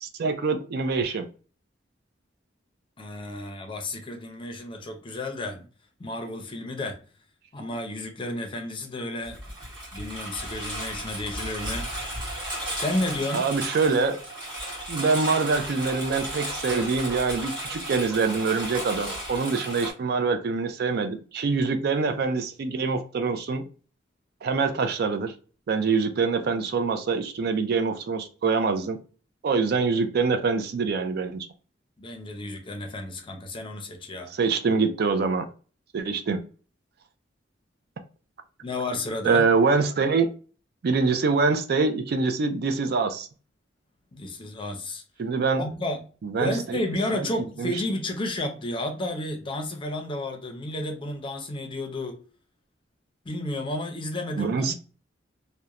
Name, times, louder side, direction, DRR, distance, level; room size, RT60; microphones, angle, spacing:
voice 1, 0.0-1.3 13.3-14.2 14.9-23.6 24.4-25.3 25.7-29.0 29.4-31.5 34.3-35.5 35.9-36.4 39.2-40.3 40.8-43.3 45.2-45.7 46.2-46.8 47.1-47.3 47.6-47.7 54.4-54.7, right 4 dB, 60° right, 0.4 m, -25 dB
voice 2, 3.0-5.7 6.0-7.0 7.5-9.4 9.9-11.9 12.8-13.5 32.0-34.3 38.6-39.5 44.1-45.0 45.6-46.0 46.4-52.2 53.2-54.7, left 1 dB, 30° left, 0.5 m, -32 dB
Engine, 9.2-19.9, right 1 dB, 25° right, 1.5 m, -34 dB
2.9 x 2.1 x 2.3 m
head